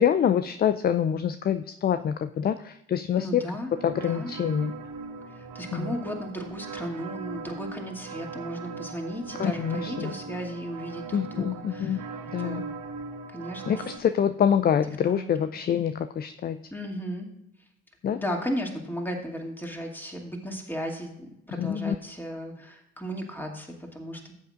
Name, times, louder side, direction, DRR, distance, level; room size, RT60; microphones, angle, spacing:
voice 1, 0.0-3.4 3.8-4.7 5.7-5.9 9.4-10.1 11.1-12.0 12.3-12.6 13.7-16.6 18.0-18.2 21.6-22.0, left 8 dB, 25° left, 11 dB, 0.4 m, -26 dB
voice 2, 3.2-3.7 4.0-4.3 5.3-12.0 12.4-12.6 13.3-13.8 15.0-15.4 16.7-17.3 18.1-24.4, equal, 5° left, 1 dB, 2.5 m, -35 dB
sound 1, 3.7-14.0, right 5 dB, 55° right, 1.5 m, -39 dB
14.5 x 7.9 x 2.5 m, 0.81 s
hypercardioid pair, 55°, 37 cm